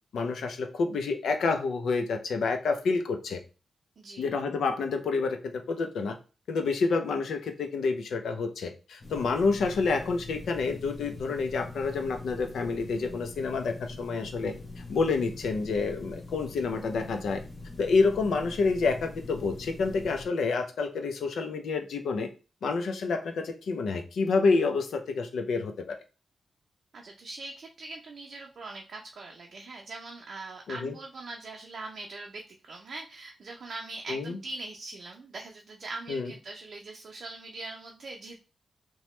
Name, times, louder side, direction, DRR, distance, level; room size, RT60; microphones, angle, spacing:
voice 1, 0.1-3.4 4.2-6.2 6.5-14.5 14.9-17.4 17.8-22.3 22.6-25.9 30.7-30.9 34.1-34.4 36.1-36.3, left 4 dB, 85° left, 6 dB, 0.5 m, -28 dB
sound 1, 9.0-20.3, left 2 dB, 45° left, 0.8 m, -43 dB
voice 2, 26.9-38.4, right 3 dB, 65° right, 0 dB, 0.4 m, -42 dB
2.9 x 2.1 x 3.0 m, 0.33 s
cardioid pair, 75°, 0 cm